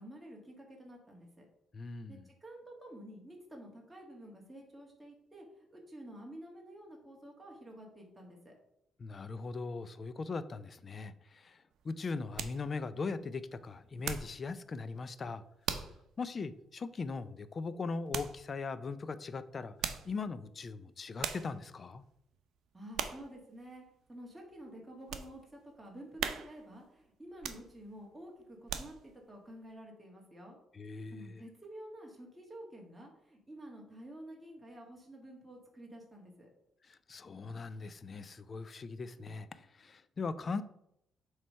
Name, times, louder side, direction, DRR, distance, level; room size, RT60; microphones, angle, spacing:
voice 1, 0.0-1.5 2.1-8.6 22.7-23.8 24.1-30.6 30.9-36.5, right 1 dB, 10° right, -1 dB, 1.7 m, -50 dB
voice 2, 1.7-2.2 9.0-15.4 16.2-19.7 20.0-22.0 30.7-31.4 36.9-40.6, left 4 dB, 40° left, 14 dB, 0.5 m, -40 dB
sound 1, 11.7-14.4 14.8-15.1 15.6-16.0 16.5-16.6 18.1-18.4 19.6-20.2 20.8-20.9 21.2-21.6 22.1-22.4 22.9-23.3 23.8-23.9 24.4-25.3 25.7-25.8 26.2-26.7 27.3-28.0 28.4-29.2 29.7-29.8, right 8 dB, 75° right, 0.6 m, -40 dB
7.4 x 3.3 x 5.5 m, 0.78 s
cardioid pair, 90°, 0 cm